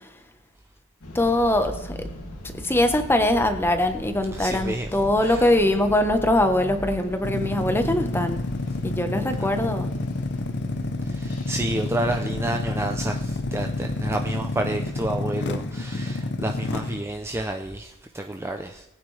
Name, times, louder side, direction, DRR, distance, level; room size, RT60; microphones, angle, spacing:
sound 1, 1.0-15.2, equal, 85° left, 2.4 m, -39 dB
voice 1, 1.1-2.0 2.6-8.4 8.8-9.9, left 1 dB, 10° left, 7 dB, 1.0 m, -22 dB
voice 2, 4.3-4.9 5.2-5.5 9.4-9.5 11.1-18.8, right 1 dB, 10° right, 4 dB, 0.5 m, -30 dB
sound 2, 7.2-17.0, left 2 dB, 50° left, 0.8 m, -29 dB
19.0 x 9.0 x 3.3 m, 0.89 s
head